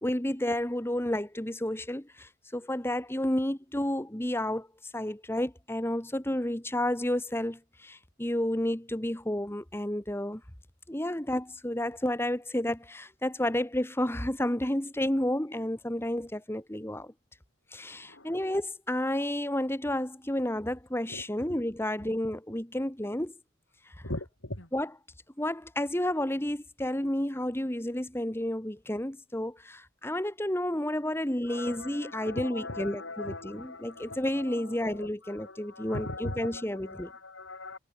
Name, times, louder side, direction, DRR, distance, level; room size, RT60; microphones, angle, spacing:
voice 1, 0.0-10.4 10.9-17.1 17.7-23.3 23.8-23.9 24.7-24.9 25.4-37.1, left 1 dB, 10° left, 1.6 m, -31 dB
voice 2, 24.0-24.7 31.5-37.8, left 2 dB, 85° left, 7.5 m, -40 dB
head